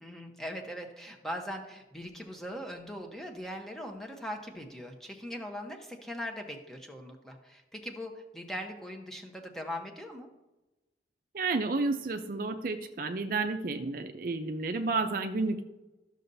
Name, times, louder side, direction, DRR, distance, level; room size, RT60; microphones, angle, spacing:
voice 1, 0.0-10.3, equal, ahead, 2 dB, 0.9 m, -40 dB
voice 2, 11.3-15.6, right 3 dB, 50° right, 6 dB, 0.5 m, -31 dB
13.0 x 6.5 x 2.7 m, 1.0 s
head